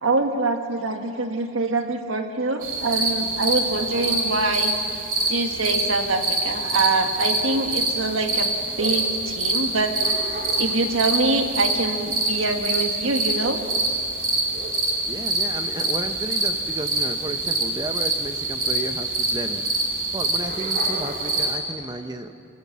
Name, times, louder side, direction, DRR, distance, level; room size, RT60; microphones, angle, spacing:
voice 1, 0.0-4.7 5.3-8.5 8.8-10.1 10.6-13.6, right 3 dB, 80° right, 5 dB, 1.7 m, -24 dB
sound 1, 2.6-21.6, right 2 dB, 45° right, 2.7 m, -25 dB
voice 2, 15.1-19.6 20.1-22.3, right 2 dB, 20° right, 8 dB, 0.8 m, -33 dB
25.5 x 15.0 x 7.4 m, 2.5 s
head